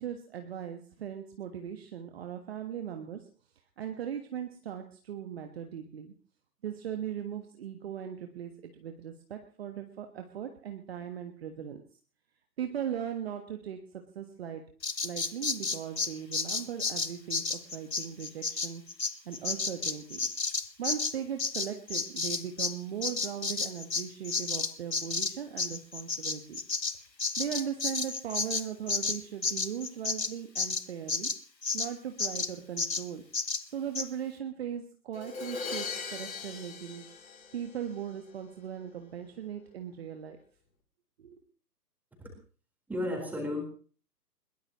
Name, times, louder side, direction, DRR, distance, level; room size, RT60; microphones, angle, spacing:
voice 1, 0.0-3.3 3.8-6.1 6.6-11.8 12.6-13.8 14.1-14.6 15.0-18.8 19.2-20.3 20.8-26.6 27.4-31.3 31.7-33.2 33.7-37.1 37.5-40.4 41.2-41.4, right 9 dB, 35° right, 5 dB, 1.5 m, -38 dB
Bird vocalization bird call bird song, 14.8-22.8 23.0-31.9 32.2-32.5 32.8-33.0 33.3-33.6 33.9-34.1, left 4 dB, 85° left, 1.2 m, -32 dB
Crash cymbal, 35.1-38.1, left 5 dB, 55° left, 3.6 m, -39 dB
voice 2, 42.9-43.6, left 1 dB, 5° right, 1 dB, 4.3 m, -33 dB
21.5 x 21.0 x 3.1 m, 0.40 s
figure-of-eight pair, 130°, 49 cm